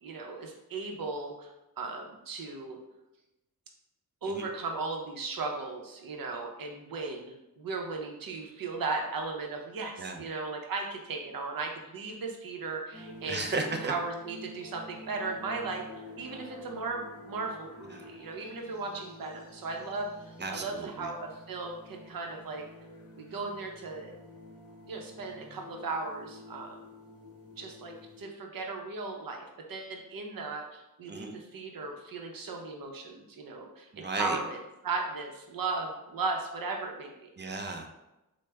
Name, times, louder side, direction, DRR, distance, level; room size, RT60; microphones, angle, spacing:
voice 1, 0.0-2.8 4.2-13.4 13.8-15.8 16.2-22.6 23.2-24.2 24.9-26.8 27.6-37.3, right 3 dB, 70° right, 2 dB, 0.7 m, -36 dB
sound 1, 12.9-28.2, left 1 dB, 40° left, 0.7 m, -49 dB
voice 2, 13.3-13.9 17.9-18.1 20.4-21.1 31.1-31.3 33.9-34.4 37.4-38.0, right 3 dB, 30° right, 4 dB, 0.4 m, -35 dB
3.1 x 2.0 x 3.4 m, 0.95 s
cardioid pair, 65°, 35 cm